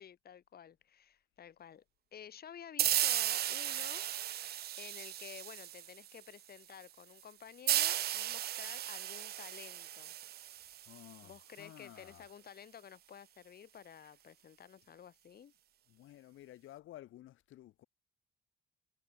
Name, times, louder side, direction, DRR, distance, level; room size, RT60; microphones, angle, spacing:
voice 1, 0.0-1.8 2.1-10.1 11.2-15.5, left 8 dB, 50° left, 1.6 m, -52 dB
sound 1, 2.8-6.2 7.7-11.2, right 12 dB, 55° right, 0.4 m, -35 dB
voice 2, 10.9-12.2 15.9-17.8, left 14 dB, 80° left, 1.8 m, -54 dB
cardioid pair, 90°, 20 cm